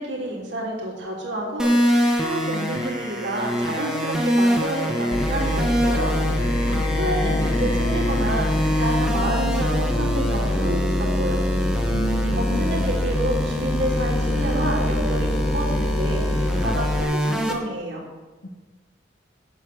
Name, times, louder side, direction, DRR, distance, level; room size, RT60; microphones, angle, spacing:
voice 1, 0.0-6.1 6.6-11.4 12.4-18.1, right 1 dB, 65° right, -2 dB, 3.2 m, -29 dB
sound 1, 1.6-17.5, equal, 5° right, 1.1 m, -25 dB
sound 2, 1.9-8.9, left 1 dB, 15° left, 1.2 m, -40 dB
sound 3, 5.1-17.0, left 1 dB, 30° left, 0.7 m, -25 dB
voice 2, 6.7-7.7 11.9-12.9 18.4-18.5, right 1 dB, 70° left, 4 dB, 1.6 m, -32 dB
8.3 x 7.2 x 8.5 m, 1.2 s
head